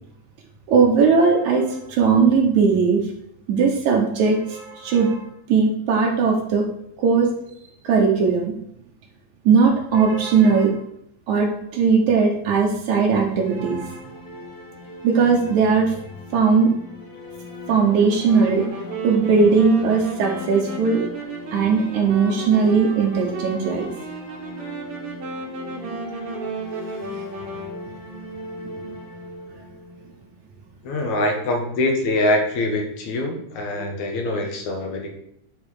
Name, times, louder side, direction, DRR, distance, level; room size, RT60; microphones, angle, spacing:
voice 1, 0.7-3.0 3.5-5.2 5.5-6.6 7.0-7.3 7.8-8.5 9.5-10.7 11.3-14.1 15.0-15.9 16.3-16.7 17.7-18.7 19.0-21.0 21.5-23.9, right 5 dB, 75° right, -1 dB, 2.4 m, -18 dB
sound 1, 13.0-30.9, left 1 dB, 40° left, 2.4 m, -39 dB
Wind instrument woodwind instrument, 18.2-27.8, right 3 dB, 55° right, 1.8 m, -33 dB
voice 2, 30.8-35.1, left 1 dB, 75° left, 3 dB, 2.5 m, -24 dB
10.5 x 3.9 x 4.8 m, 0.74 s
omnidirectional pair, 3.5 m